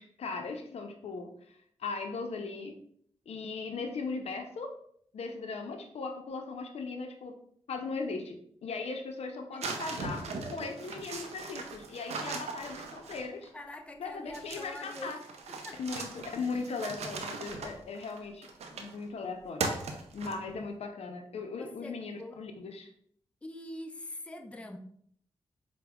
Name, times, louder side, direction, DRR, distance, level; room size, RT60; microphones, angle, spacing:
voice 1, 0.0-2.7 3.3-4.7 5.1-7.3 7.7-8.4 8.6-13.5 14.0-15.2 15.8-19.7 20.1-22.9, left 4 dB, 70° left, 5 dB, 0.4 m, -38 dB
sound 1, 9.6-13.5 14.3-19.0 19.6-20.6, right 4 dB, 85° right, 0.4 m, -39 dB
voice 2, 13.5-15.2 15.5-16.0 21.5-22.4 23.4-24.8, left 1 dB, 10° left, 6 dB, 0.4 m, -44 dB
4.7 x 2.0 x 2.2 m, 0.64 s
cardioid pair, 50°, 11 cm